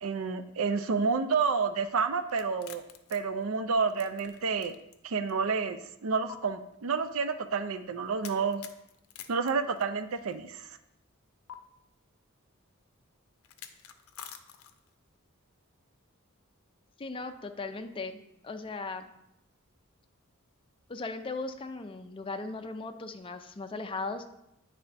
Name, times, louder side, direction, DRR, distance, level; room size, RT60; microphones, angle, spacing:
voice 1, 0.0-2.8 3.1-4.8 5.0-8.6 9.3-10.7, right 5 dB, 75° right, 10 dB, 0.5 m, -29 dB
sound 1, 2.3-5.0 5.3-5.4 6.3-6.4 8.2-10.3 11.5-11.6 13.4-14.9, left 9 dB, 85° left, 0.5 m, -48 dB
voice 2, 17.0-18.2 18.4-19.1 20.9-24.3, left 3 dB, 25° left, 6 dB, 0.4 m, -37 dB
9.4 x 3.3 x 4.1 m, 0.82 s
head